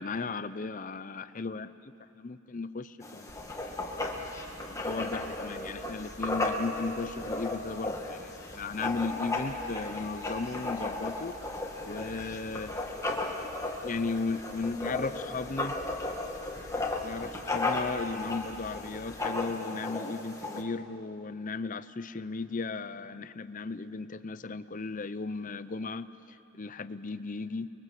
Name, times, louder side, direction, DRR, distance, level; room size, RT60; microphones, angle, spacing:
voice 1, 0.0-1.8 2.1-3.3 4.7-11.4 11.9-12.7 13.8-15.8 17.0-27.7, left 3 dB, 35° left, 13 dB, 0.6 m, -36 dB
Writing, 3.0-20.6, left 2 dB, 15° left, 1.8 m, -35 dB
sound 1, 3.3-19.3, right 1 dB, 60° right, 3.0 m, -53 dB
30.0 x 22.0 x 7.7 m, 2.9 s
head